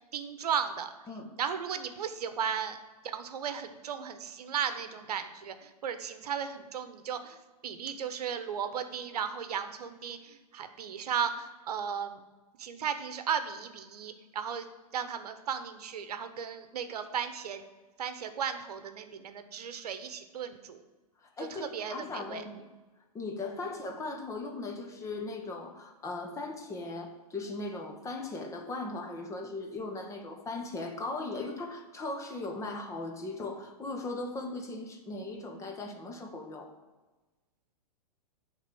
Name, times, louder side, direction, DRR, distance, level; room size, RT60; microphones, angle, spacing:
voice 1, 0.1-0.9 1.4-2.8 3.0-7.4 7.6-12.2 12.6-14.7 14.9-17.6 18.0-20.8 21.5-22.0 22.3-22.4, right 7 dB, 75° right, 10 dB, 0.9 m, -35 dB
voice 2, 21.2-22.7 23.1-36.7, left 2 dB, 15° left, 3 dB, 1.1 m, -38 dB
9.3 x 3.7 x 6.8 m, 1.2 s
hypercardioid pair, 135°, 20 cm